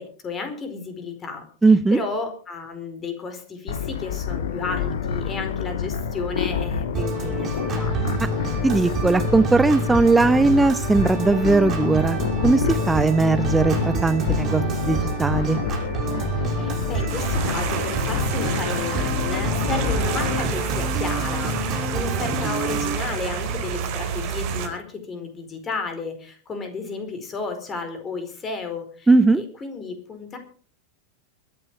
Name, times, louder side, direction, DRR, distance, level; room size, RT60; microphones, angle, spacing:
voice 1, 0.0-7.9 16.5-29.1 29.4-30.4, left 4 dB, 20° left, 7 dB, 4.6 m, -33 dB
voice 2, 1.6-2.0 8.6-15.6 29.1-29.4, right 3 dB, 10° right, 12 dB, 0.8 m, -19 dB
sound 1, 3.7-20.4, left 7 dB, 60° left, 1.6 m, -28 dB
Organ, 6.9-22.9, right 3 dB, 30° right, 5.9 m, -28 dB
sound 2, 17.1-24.7, right 6 dB, 45° right, 3.9 m, -29 dB
23.5 x 8.9 x 5.4 m, 0.43 s
figure-of-eight pair, 90°, 0 cm